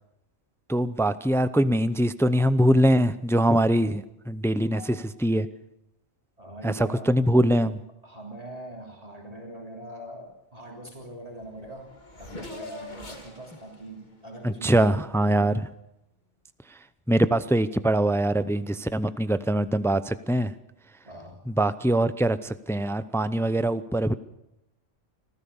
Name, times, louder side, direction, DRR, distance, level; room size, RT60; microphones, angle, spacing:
voice 1, 0.7-5.0 5.2-5.5 6.6-7.8 14.4-15.7 17.1-20.5 21.5-24.1, right 1 dB, 5° left, 13 dB, 0.4 m, -23 dB
voice 2, 4.5-4.9 6.4-7.1 8.0-11.9 12.2-14.9 21.0-21.4, right 1 dB, 30° right, 0 dB, 3.4 m, -42 dB
Race car auto racing / Accelerating revving vroom, 11.0-11.1 11.3-15.3, left 2 dB, 35° left, 2.4 m, -44 dB
26.0 x 15.5 x 7.1 m, 0.85 s
omnidirectional pair, 1.3 m